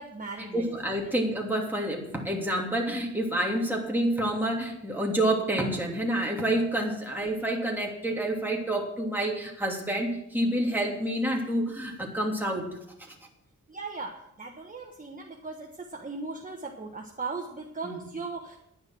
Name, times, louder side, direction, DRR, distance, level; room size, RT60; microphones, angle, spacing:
voice 1, 0.0-0.7 13.7-18.6, right 4 dB, 25° right, 1 dB, 1.4 m, -38 dB
voice 2, 0.5-12.7 17.8-17.9, right 1 dB, 5° right, -2 dB, 2.9 m, -28 dB
10.5 x 9.8 x 6.2 m, 0.78 s
wide cardioid pair, 95°, 30 cm